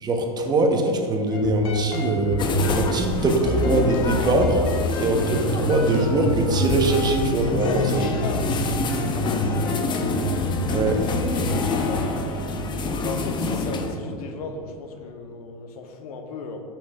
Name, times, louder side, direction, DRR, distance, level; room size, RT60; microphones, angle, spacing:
voice 1, 0.0-2.5 2.8-4.6 5.0-8.1 10.7-11.0, right 2 dB, 20° right, 3 dB, 1.0 m, -22 dB
sound 1, 1.3-14.7, left 1 dB, 45° left, 1.3 m, -28 dB
sound 2, 2.4-14.0, left 3 dB, 25° left, 0.6 m, -28 dB
voice 2, 4.7-5.1 7.5-9.8 10.7-12.2 13.0-16.6, left 4 dB, 70° left, 5 dB, 1.0 m, -36 dB
13.0 x 6.1 x 2.4 m, 2.6 s
hypercardioid pair, 115°, 20 cm